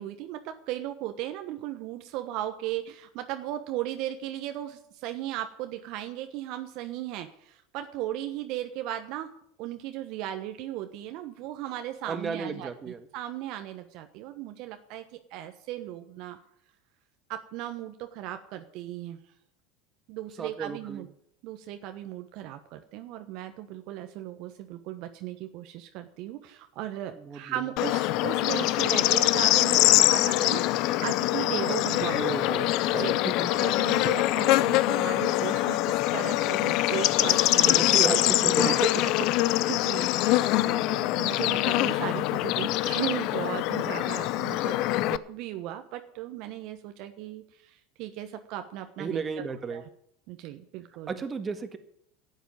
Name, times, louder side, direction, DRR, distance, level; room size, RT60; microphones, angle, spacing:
voice 1, 0.0-9.3 9.6-15.0 15.3-16.4 17.3-19.2 20.1-21.1 21.4-32.2 33.0-33.2 33.5-39.1 39.5-49.4 49.7-49.8 50.3-51.1, right 13 dB, 60° right, 7 dB, 1.1 m, -37 dB
voice 2, 12.1-13.1 20.4-21.1 27.1-27.4 32.0-33.5 37.7-38.9 49.0-49.8 51.1-51.8, right 5 dB, 25° right, 8 dB, 1.7 m, -33 dB
Bird / Insect, 27.8-45.2, left 16 dB, 55° left, 0.5 m, -24 dB
12.0 x 8.1 x 9.3 m, 0.72 s
hypercardioid pair, 80°, 0 cm